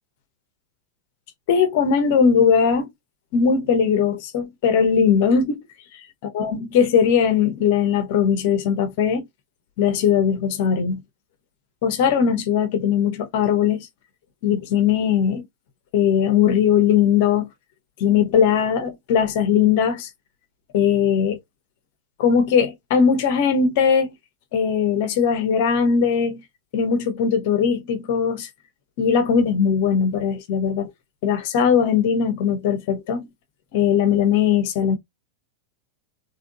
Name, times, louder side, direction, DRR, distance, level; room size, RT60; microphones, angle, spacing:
voice 1, 1.5-2.9 3.3-5.6 6.3-9.2 9.8-11.0 11.8-13.9 14.4-15.4 15.9-17.5 18.0-20.1 20.7-21.4 22.2-24.1 24.5-26.4 26.7-28.5 29.0-30.9 31.2-33.3 33.7-35.0, left 7 dB, 50° left, 0.8 m, -19 dB
3.6 x 3.3 x 2.4 m
figure-of-eight pair, 90°, 0 cm